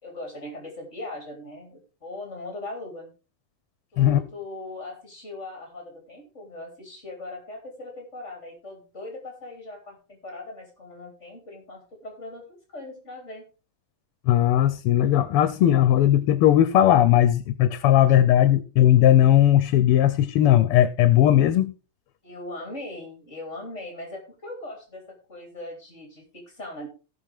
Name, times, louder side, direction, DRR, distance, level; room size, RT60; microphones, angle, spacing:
voice 1, 0.0-3.1 3.9-12.4 12.7-13.5 22.2-26.9, left 2 dB, 30° left, 3.1 m, -39 dB
voice 2, 14.2-21.7, left 11 dB, 85° left, 1.6 m, -18 dB
17.5 x 6.0 x 3.5 m
omnidirectional pair, 2.4 m